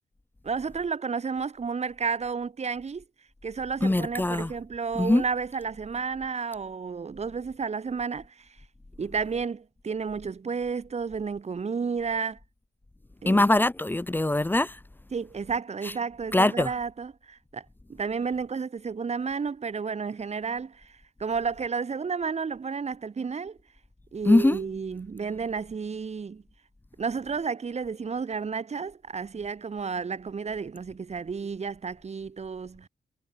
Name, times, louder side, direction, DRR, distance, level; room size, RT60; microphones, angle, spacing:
voice 1, 0.4-3.0 3.4-8.5 9.0-12.4 13.2-13.4 15.1-23.6 24.1-26.4 27.0-32.9, right 5 dB, 40° right, 5.1 m, -32 dB
voice 2, 3.8-4.5 5.0-5.2 13.3-14.7 16.3-16.7 24.3-24.6, left 2 dB, 10° left, 1.0 m, -22 dB
wide cardioid pair, 120°, 17 cm